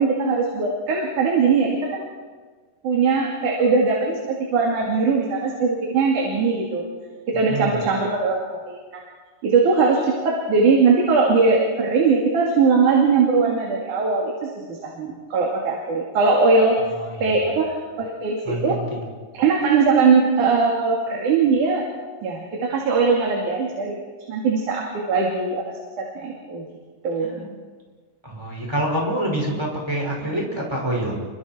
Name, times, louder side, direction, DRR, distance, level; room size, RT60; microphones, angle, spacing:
voice 1, 0.0-2.1 2.8-6.9 7.3-8.8 9.4-16.8 17.2-18.8 19.3-21.8 22.2-24.0 24.3-25.6 26.0-26.7 27.0-27.5, right 4 dB, 65° right, -2 dB, 4.0 m, -20 dB
voice 2, 7.3-7.8 16.9-17.3 18.4-19.1 27.2-27.5 28.2-31.1, right 1 dB, 5° right, -2 dB, 5.4 m, -27 dB
29.0 x 24.5 x 4.6 m, 1.5 s
omnidirectional pair, 3.8 m